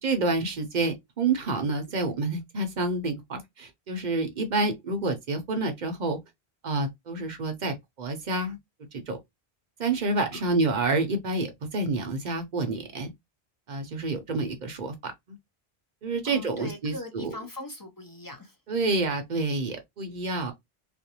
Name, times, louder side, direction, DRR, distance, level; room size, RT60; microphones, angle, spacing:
voice 1, 0.0-6.2 6.6-8.6 8.9-9.2 9.8-13.1 13.7-15.1 16.0-17.3 18.7-20.5, right 3 dB, 55° right, 0.6 m, -28 dB
voice 2, 16.3-18.5, left 2 dB, 30° left, 0.4 m, -40 dB
2.5 x 2.0 x 2.7 m
omnidirectional pair, 1.0 m